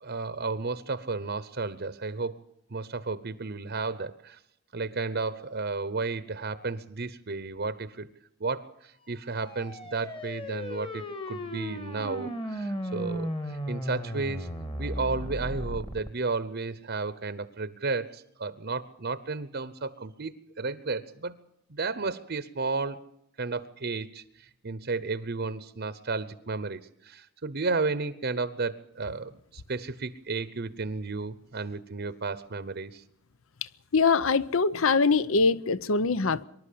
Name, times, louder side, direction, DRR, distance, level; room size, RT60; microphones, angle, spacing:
voice 1, 0.0-2.4 2.7-4.4 4.7-8.1 8.4-14.5 14.8-21.4 21.7-23.1 23.4-33.0, right 3 dB, 50° right, 0.9 m, -33 dB
sound 1, 9.2-16.1, equal, 25° left, 1.6 m, -35 dB
voice 2, 33.9-36.4, left 4 dB, 70° left, 0.7 m, -23 dB
25.0 x 12.0 x 8.5 m
head